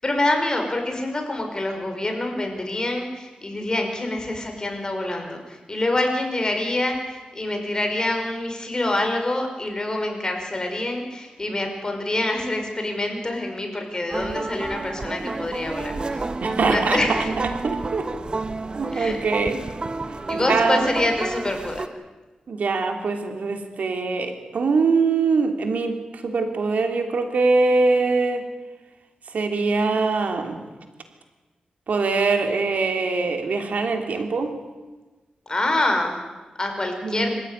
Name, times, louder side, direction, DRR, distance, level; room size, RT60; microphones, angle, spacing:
voice 1, 0.0-16.3 16.7-17.3 18.9-19.2 20.3-21.8 35.5-36.2 36.6-37.3, left 2 dB, 30° left, 3 dB, 5.4 m, -26 dB
sound 1, 14.1-21.9, right 3 dB, 35° right, 1.5 m, -30 dB
voice 2, 16.4-17.0 17.6-18.1 18.7-19.6 20.3-20.8 22.5-26.0 26.2-28.4 29.3-30.6 31.9-34.5 37.0-37.3, right 4 dB, 75° right, 5 dB, 3.1 m, -22 dB
26.0 x 15.0 x 9.9 m, 1.2 s
wide cardioid pair, 90°, 3 cm